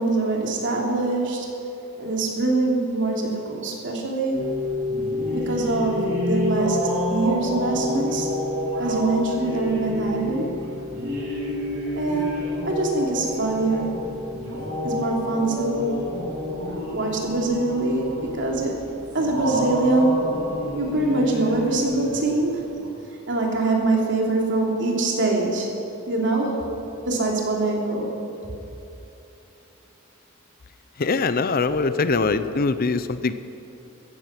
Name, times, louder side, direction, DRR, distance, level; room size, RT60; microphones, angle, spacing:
voice 1, 0.0-1.5 2.0-4.5 5.3-6.8 7.1-8.3 8.8-10.5 11.9-13.9 14.8-16.0 16.9-18.9 19.1-20.3 20.8-22.6 23.3-25.7 26.1-26.6 27.1-28.1, right 2 dB, 60° right, -1 dB, 3.0 m, -24 dB
sound 1, 4.3-22.9, left 1 dB, 85° right, 3.9 m, -29 dB
voice 2, 31.0-33.3, left 4 dB, 45° left, 12 dB, 0.6 m, -22 dB
15.5 x 14.5 x 6.0 m, 3.0 s
head